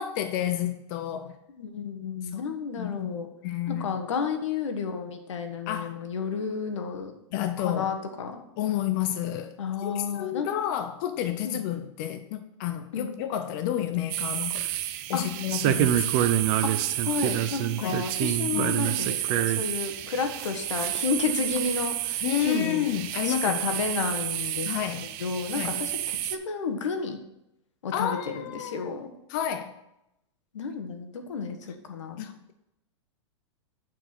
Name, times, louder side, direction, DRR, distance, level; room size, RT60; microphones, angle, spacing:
voice 1, 0.0-1.4 2.7-3.2 3.4-4.0 5.7-6.0 7.3-7.9 8.6-14.7 15.1-16.3 17.8-18.0 18.5-18.7 22.2-23.6 24.6-25.1 25.5-25.9 27.9-29.0 29.3-29.7 32.2-32.5, left 11 dB, 45° left, 9 dB, 0.6 m, -30 dB
voice 2, 1.6-3.3 3.7-7.1 7.6-8.4 9.6-10.5 11.4-11.6 12.9-13.2 15.1-15.2 16.6-16.7 17.0-22.9 23.2-24.7 25.0-27.2 27.8-29.1 30.5-32.3, left 5 dB, 90° left, 6 dB, 1.4 m, -31 dB
sound 1, 14.1-26.4, right 12 dB, 40° right, 0.6 m, -28 dB
8.8 x 4.6 x 5.9 m, 0.85 s
supercardioid pair, 150°, 15 cm